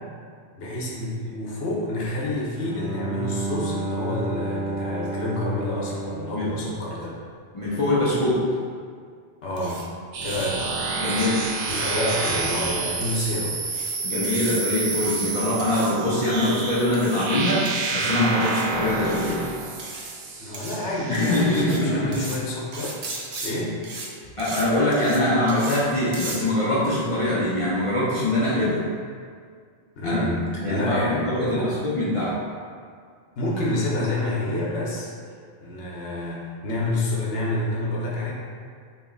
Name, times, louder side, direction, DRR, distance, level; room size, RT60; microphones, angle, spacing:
voice 1, 0.5-7.2 9.4-9.8 10.2-10.8 11.7-13.6 20.4-23.0 23.4-23.8 30.0-31.7 33.4-35.1 35.6-38.3, left 1 dB, 90° left, -4 dB, 1.0 m, -28 dB
Bowed string instrument, 2.6-7.4, right 2 dB, 5° right, 1.1 m, -31 dB
voice 2, 7.5-8.4 11.0-11.4 14.0-17.7 17.9-19.4 21.1-22.2 24.4-28.8 30.0-30.2 30.5-32.3, left 1 dB, 35° left, -10 dB, 0.6 m, -23 dB
sound 1, 9.6-9.8 10.2-10.5 11.1-11.2 11.6-11.9 12.4-12.7 13.0-13.3 13.7-14.0 14.2-14.6 14.9-15.3 15.6-15.9 16.3-16.6 16.9-17.3 17.7-17.9 18.4-18.7 19.0-19.4 19.8-20.2 20.5-20.8 21.1-21.8 22.1-22.4 22.7-23.5 23.8-24.1 24.4-24.6 24.9-25.2 25.5-25.8 26.1-26.4, right 3 dB, 50° right, 0.5 m, -37 dB
sound 2, 10.1-21.8, right 4 dB, 80° right, 0.9 m, -29 dB
3.0 x 2.9 x 3.7 m, 2.1 s
omnidirectional pair, 1.1 m